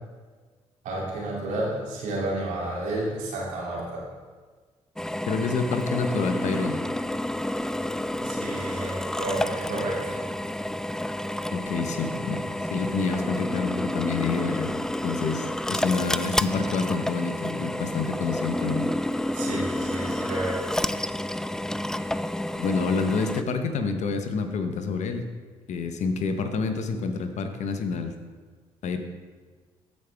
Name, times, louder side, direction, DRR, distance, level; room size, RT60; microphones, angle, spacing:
voice 1, 0.8-4.0 6.4-6.5 8.2-10.1 19.3-20.7, right 1 dB, 75° right, -4 dB, 2.7 m, -31 dB
Drill, 5.0-23.4, left 1 dB, 5° left, 0.3 m, -30 dB
voice 2, 5.3-6.8 11.5-12.4 12.7-18.9 22.5-25.2 25.7-28.1 28.8-29.0, left 4 dB, 65° left, 7 dB, 1.0 m, -28 dB
14.5 x 5.3 x 3.5 m, 1.4 s
hypercardioid pair, 50°, 13 cm